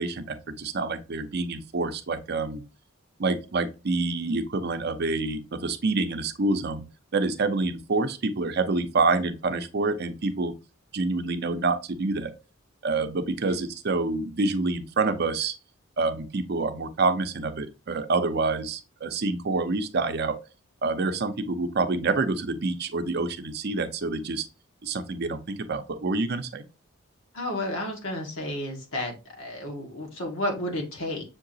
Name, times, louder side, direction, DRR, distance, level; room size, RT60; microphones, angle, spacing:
voice 1, 0.0-2.6 3.2-6.8 7.1-10.5 10.9-12.3 12.8-15.5 16.0-20.4 20.8-24.5 24.8-26.6, right 3 dB, 55° right, 0.6 m, -27 dB
voice 2, 27.3-31.2, left 1 dB, 75° left, 1.7 m, -32 dB
6.9 x 2.8 x 2.7 m
head